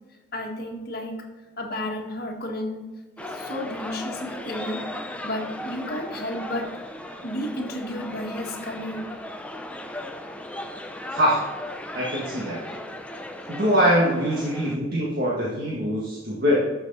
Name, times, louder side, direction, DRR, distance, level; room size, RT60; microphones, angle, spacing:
voice 1, 0.3-1.3 1.6-2.8 3.2-4.8 5.2-6.7 7.2-9.1, left 1 dB, 45° left, 0 dB, 1.7 m, -32 dB
sound 1, 3.2-14.8, left 1 dB, 5° left, 0.6 m, -37 dB
voice 2, 11.9-12.6 13.5-16.6, equal, 45° right, -5 dB, 1.8 m, -23 dB
12.5 x 6.5 x 4.0 m, 1.2 s
head